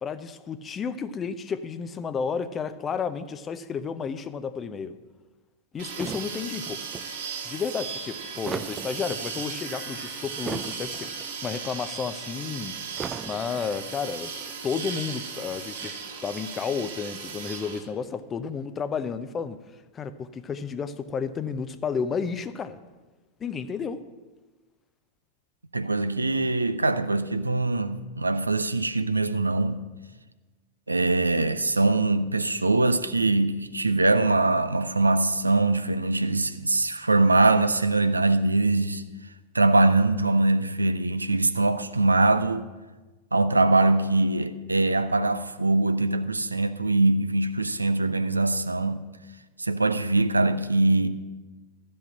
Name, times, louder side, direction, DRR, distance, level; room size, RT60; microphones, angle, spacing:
voice 1, 0.0-4.9 5.7-6.8 7.4-12.7 13.3-14.3 14.6-16.0 16.2-19.6 19.9-22.8 23.4-24.0, left 6 dB, 25° left, 0.6 m, -32 dB
sound 1, 5.8-7.1 8.1-9.5 10.2-11.3 11.5-11.6 12.8-13.8, right 7 dB, 20° right, 0.4 m, -37 dB
sound 2, 5.8-17.8, right 5 dB, 55° right, 1.9 m, -36 dB
voice 2, 25.7-29.8 30.9-39.0 39.5-42.7 43.3-49.0 49.6-51.1, right 2 dB, 80° right, 0.5 m, -22 dB
13.0 x 5.4 x 8.7 m
figure-of-eight pair, 90°, 0 cm